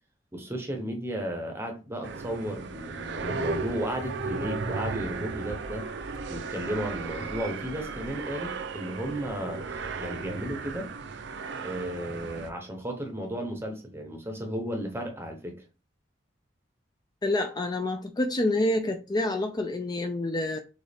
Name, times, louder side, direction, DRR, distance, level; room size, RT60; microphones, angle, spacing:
voice 1, 0.3-5.8 6.3-10.9 11.6-15.6, equal, 15° right, 0.8 m, -34 dB
sound 1, 2.0-12.5, right 4 dB, 65° right, 0.5 m, -35 dB
voice 2, 17.2-20.6, left 1 dB, 20° left, 0.4 m, -27 dB
6.3 x 2.4 x 3.4 m
head